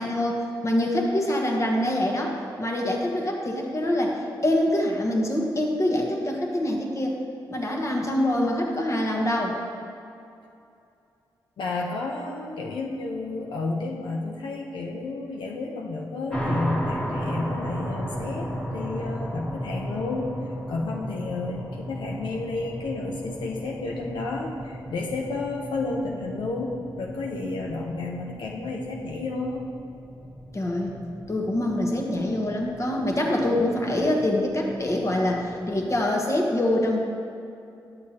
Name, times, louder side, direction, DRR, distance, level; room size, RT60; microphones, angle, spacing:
voice 1, 0.0-7.2 7.5-9.6 30.5-31.0 31.3-37.0, left 1 dB, 40° left, 0 dB, 1.1 m, -25 dB
voice 2, 11.6-20.3 20.7-29.6, left 3 dB, 80° left, -1 dB, 0.7 m, -31 dB
sound 1, 16.3-36.0, equal, 10° left, 1.4 m, -35 dB
9.8 x 6.4 x 2.9 m, 2.6 s
cardioid pair, 65°, 8 cm